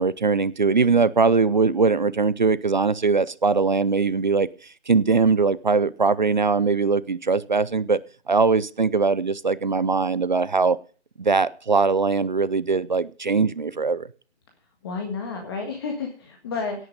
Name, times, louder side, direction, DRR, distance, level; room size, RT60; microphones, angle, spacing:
voice 1, 0.0-4.5 4.9-8.0 8.3-10.8 11.2-14.1, right 4 dB, 40° right, 19 dB, 0.6 m, -21 dB
voice 2, 14.8-16.9, left 4 dB, 20° left, 3 dB, 1.7 m, -31 dB
17.5 x 8.9 x 5.3 m, 0.39 s
figure-of-eight pair, 160°, 35 cm